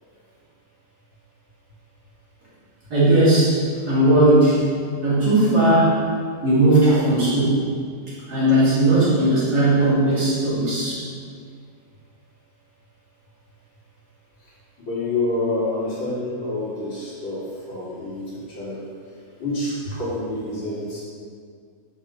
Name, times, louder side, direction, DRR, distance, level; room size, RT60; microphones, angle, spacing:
voice 1, 2.9-4.6 5.0-6.0 6.4-7.6 8.3-11.0, right 1 dB, 45° right, -9 dB, 3.2 m, -17 dB
voice 2, 14.8-18.8 19.4-21.0, left 2 dB, 60° left, -8 dB, 3.6 m, -28 dB
7.1 x 6.6 x 6.5 m, 2.1 s
omnidirectional pair, 2.3 m